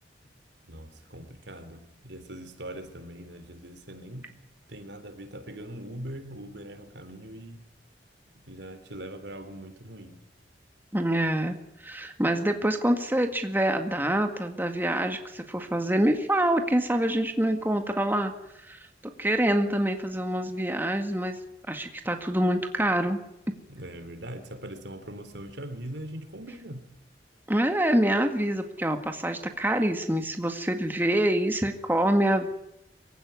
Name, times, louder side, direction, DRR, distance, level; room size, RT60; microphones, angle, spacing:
voice 1, 0.6-4.3 4.7-7.6 8.5-10.2 23.7-26.9, right 1 dB, 75° right, 3.5 m, -41 dB
voice 2, 10.9-11.6 11.8-18.3 18.7-18.8 19.2-21.4 21.7-23.2 27.5-32.5, right 1 dB, 10° right, 1.8 m, -26 dB
24.0 x 16.5 x 9.7 m
head